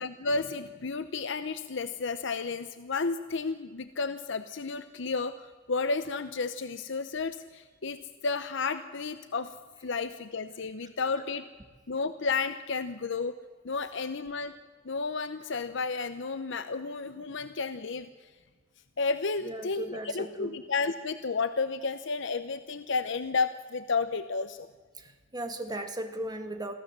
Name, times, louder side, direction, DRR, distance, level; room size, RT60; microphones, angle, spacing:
voice 1, 0.0-8.0 8.2-9.5 9.8-11.4 11.9-13.4 13.6-14.5 14.8-18.1 19.0-24.7, left 4 dB, 70° left, 11 dB, 0.8 m, -32 dB
voice 2, 19.4-20.6 24.9-26.7, right 1 dB, 20° right, 6 dB, 1.9 m, -37 dB
23.0 x 15.5 x 7.5 m, 1.4 s
head